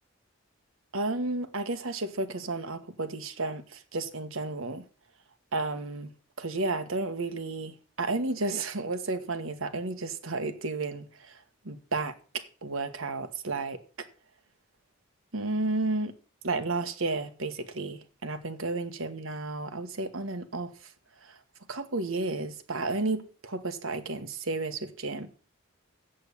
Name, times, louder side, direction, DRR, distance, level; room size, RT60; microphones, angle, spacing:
voice 1, 0.9-4.9 5.5-6.1 6.4-14.1 15.3-16.1 16.4-20.9 21.2-21.4 21.7-25.3, right 3 dB, 75° right, 1.4 m, -32 dB
8.0 x 7.7 x 8.5 m
head